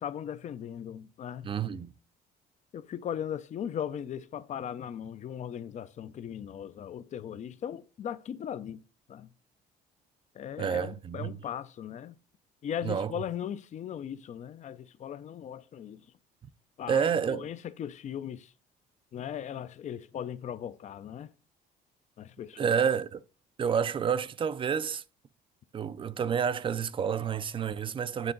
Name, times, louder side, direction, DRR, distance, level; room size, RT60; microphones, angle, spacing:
voice 1, 0.0-1.5 2.7-8.8 9.1-9.3 10.3-12.1 12.6-16.0 16.8-18.5 19.1-21.3 22.2-22.8, left 9 dB, 45° left, 0.5 m, -38 dB
voice 2, 1.4-2.0 10.6-11.4 12.8-13.1 16.9-17.5 22.6-23.2 23.6-25.0 25.7-28.3, right 7 dB, 30° right, 0.4 m, -29 dB
9.1 x 3.7 x 3.8 m
cardioid pair, 110°, 17 cm